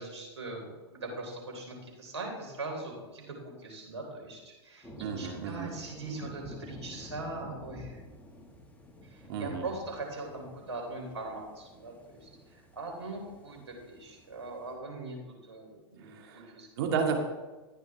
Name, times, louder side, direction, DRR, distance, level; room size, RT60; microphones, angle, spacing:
voice 1, 0.0-8.0 9.0-15.2 15.4-16.7, right 2 dB, 90° right, 0 dB, 3.7 m, -41 dB
sound 1, 4.8-14.8, left 1 dB, 10° left, 2.0 m, -50 dB
voice 2, 5.0-5.7 9.3-9.7 16.0-17.2, right 6 dB, 60° right, 2 dB, 2.3 m, -32 dB
13.5 x 9.8 x 3.6 m, 1.2 s
hypercardioid pair, 110°, 14 cm